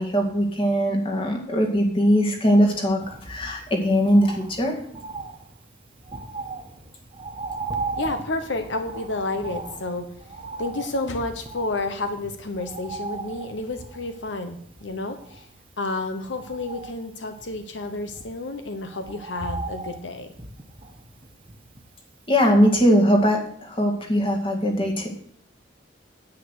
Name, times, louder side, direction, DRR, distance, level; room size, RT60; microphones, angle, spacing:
voice 1, 0.0-4.8 22.3-25.1, equal, 30° left, 1 dB, 2.1 m, -20 dB
Bird, 3.0-22.1 22.4-22.5, right 4 dB, 30° right, 1.2 m, -38 dB
voice 2, 8.0-10.1 10.6-15.5 15.8-20.3, left 2 dB, 80° left, 7 dB, 1.1 m, -30 dB
9.8 x 8.3 x 6.4 m, 0.65 s
head